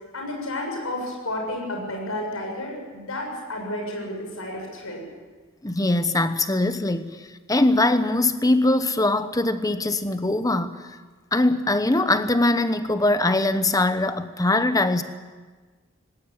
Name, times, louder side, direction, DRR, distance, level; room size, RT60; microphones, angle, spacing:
voice 1, 0.1-5.1, left 1 dB, 85° left, 1 dB, 7.2 m, -31 dB
voice 2, 5.6-7.1 7.5-10.8 11.3-15.0, left 2 dB, 15° left, 10 dB, 1.0 m, -21 dB
19.0 x 17.5 x 8.9 m, 1.4 s
head